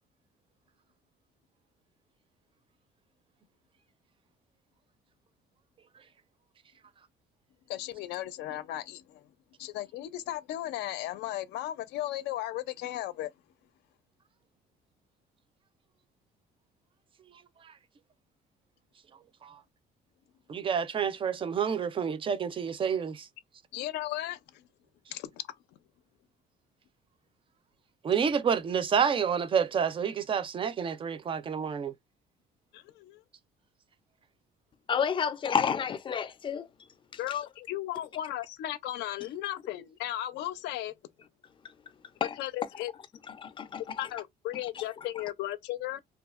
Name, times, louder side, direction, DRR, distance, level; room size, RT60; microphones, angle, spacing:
voice 1, 7.7-9.3 9.6-13.3 23.7-24.7 25.1-25.4 32.7-33.2 37.2-40.9 42.4-42.9 44.0-46.0, left 14 dB, 85° left, 0.5 m, -36 dB
voice 2, 20.5-23.3 28.0-31.9, right 7 dB, 30° right, 0.4 m, -29 dB
voice 3, 34.9-36.7 43.4-44.1, left 7 dB, 30° left, 0.5 m, -30 dB
2.7 x 2.3 x 2.4 m
cardioid pair, 110°, 17 cm